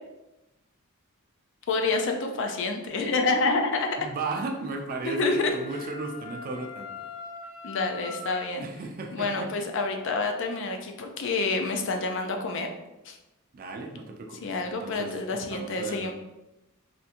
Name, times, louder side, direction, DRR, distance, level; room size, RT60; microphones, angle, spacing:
voice 1, 1.7-4.0 5.0-5.5 7.6-8.6 9.1-12.7 13.0-13.2 14.4-16.1, left 3 dB, 60° left, 4 dB, 0.4 m, -28 dB
Wind instrument woodwind instrument, 3.9-8.6, left 4 dB, 75° left, 1.3 m, -43 dB
voice 2, 4.0-6.9 8.6-9.5 13.5-16.1, right 3 dB, 40° right, 3 dB, 0.4 m, -35 dB
3.4 x 2.5 x 2.8 m, 0.97 s
head